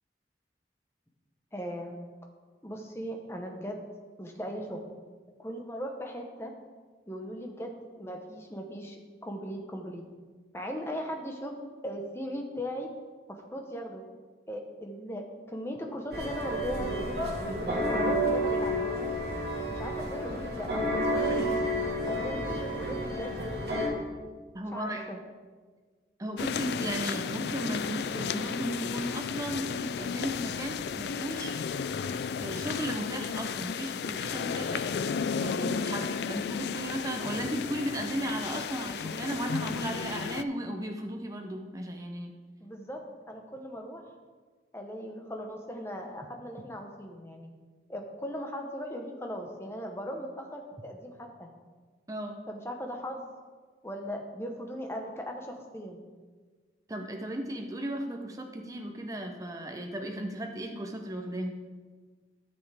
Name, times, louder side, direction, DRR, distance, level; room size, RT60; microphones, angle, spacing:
voice 1, 1.5-2.0 2.6-3.8 4.2-4.8 5.4-6.5 7.1-10.0 10.5-11.5 11.8-12.9 13.3-14.0 14.5-16.9 17.4-19.1 19.7-21.5 22.1-23.3 24.7-25.2 42.6-43.0 43.3-44.0 44.7-47.5 47.9-51.5 52.5-53.3 53.8-56.0, equal, 15° left, 2 dB, 1.0 m, -38 dB
sound 1, 16.1-23.9, equal, 65° right, 1.8 m, -30 dB
voice 2, 24.5-25.1 26.2-31.6 32.4-35.0 35.4-42.3 52.1-52.4 56.9-61.6, right 1 dB, 20° right, 3 dB, 0.6 m, -35 dB
sound 2, 26.4-40.4, left 6 dB, 70° left, 0.3 m, -33 dB
12.5 x 7.1 x 3.5 m, 1.4 s
head